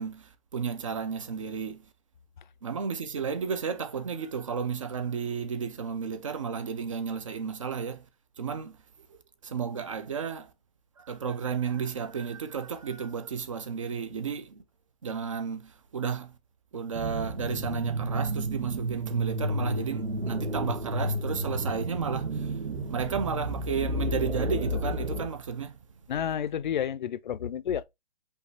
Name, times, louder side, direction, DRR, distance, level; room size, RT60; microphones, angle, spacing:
voice 1, 0.0-1.9 2.6-8.1 8.4-8.8 9.1-10.5 11.0-14.6 15.0-16.3 16.7-25.8, right 6 dB, 30° right, 0.5 m, -33 dB
sound 1, 16.9-25.3, right 1 dB, 85° right, 1.6 m, -31 dB
voice 2, 26.1-27.8, left 9 dB, 50° left, 0.4 m, -30 dB
5.3 x 3.3 x 3.1 m
hypercardioid pair, 165°, 31 cm